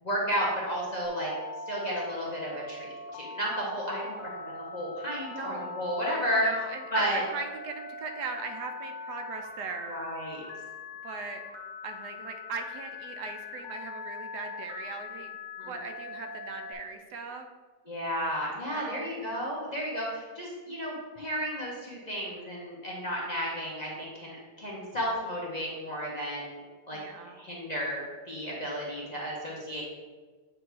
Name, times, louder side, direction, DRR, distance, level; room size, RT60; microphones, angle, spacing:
voice 1, 0.0-1.3 1.7-6.5 6.9-7.2 9.9-10.4 15.6-15.8 17.9-26.6 26.9-27.0 27.3-29.8, equal, 30° left, -5 dB, 0.9 m, -33 dB
Telephone, 1.0-16.7, left 3 dB, 80° left, 0.4 m, -42 dB
voice 2, 5.3-5.7 6.4-10.0 11.0-11.4 11.8-15.3 15.7-17.5 18.7-19.1 26.9-27.4, right 4 dB, 75° right, 5 dB, 1.2 m, -39 dB
8.0 x 2.7 x 4.6 m, 1.4 s
omnidirectional pair, 1.8 m